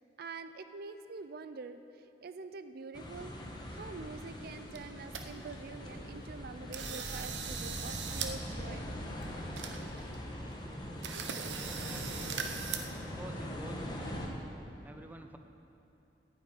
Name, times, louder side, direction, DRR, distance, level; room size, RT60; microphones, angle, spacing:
voice 1, 0.0-3.4 3.7-8.9, right 4 dB, 60° right, 10 dB, 0.5 m, -46 dB
sound 1, 2.9-14.3, equal, 25° left, 1.4 m, -42 dB
sound 2, 4.4-4.5 4.7-5.2 5.7-5.8 6.2-6.4 6.7-8.3 8.6-8.7 9.2-9.3 9.5-10.2 10.5-10.6 11.0-12.8, right 7 dB, 85° right, 0.9 m, -39 dB
voice 2, 11.8-12.6 13.0-14.2 14.8-15.4, right 1 dB, 10° right, 5 dB, 0.6 m, -50 dB
9.6 x 7.8 x 9.3 m, 2.9 s
head